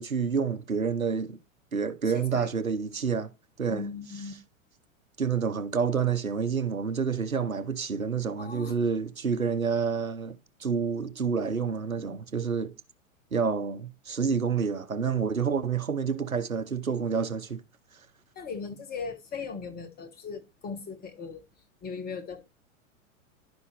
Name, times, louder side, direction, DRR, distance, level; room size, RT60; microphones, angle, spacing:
voice 1, 0.0-1.4 1.7-3.3 3.6-3.9 5.2-12.7 13.3-17.6, right 6 dB, 90° right, 0.8 m, -28 dB
voice 2, 2.1-2.5 3.7-4.3 8.4-8.7 18.3-21.4 21.8-22.4, left 5 dB, 25° left, 1.4 m, -38 dB
11.0 x 5.4 x 3.3 m
figure-of-eight pair, 95°, 40 cm